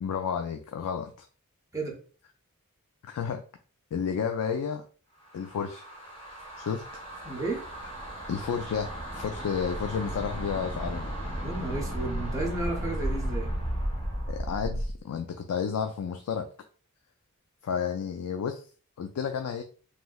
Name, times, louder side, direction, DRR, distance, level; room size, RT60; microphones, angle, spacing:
voice 1, 0.0-1.3 3.0-3.4 3.9-4.8 5.3-5.8 6.6-6.8 8.3-11.1 14.3-16.5 17.6-18.7 19.0-19.6, left 7 dB, 80° left, 6 dB, 0.3 m, -31 dB
sound 1, 5.2-15.0, equal, 25° left, 0.8 m, -34 dB
voice 2, 7.2-7.6 11.4-13.5, right 2 dB, 15° right, -1 dB, 0.7 m, -32 dB
3.1 x 2.7 x 2.2 m, 0.40 s
head